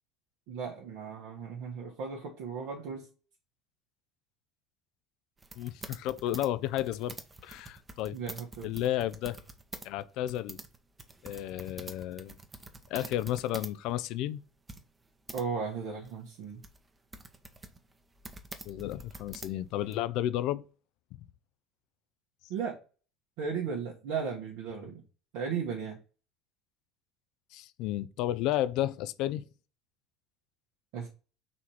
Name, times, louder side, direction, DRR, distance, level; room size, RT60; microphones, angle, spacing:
voice 1, 0.5-3.1 8.1-8.7 15.3-16.6 22.5-22.8 23.4-25.0 25.3-26.0 30.9-31.1, right 6 dB, 65° right, 1.1 m, -36 dB
sound 1, 5.4-9.9 10.1-13.8 14.0-14.1 14.7-15.4 16.0-19.9, right 2 dB, 20° right, 0.8 m, -46 dB
voice 2, 5.6-7.2 7.4-8.2 8.6-9.4 9.8-10.6 11.2-12.4 12.9-14.4 18.7-20.6 27.5-29.5, left 13 dB, 60° left, 0.4 m, -32 dB
4.2 x 2.8 x 4.6 m
hypercardioid pair, 80°, 0 cm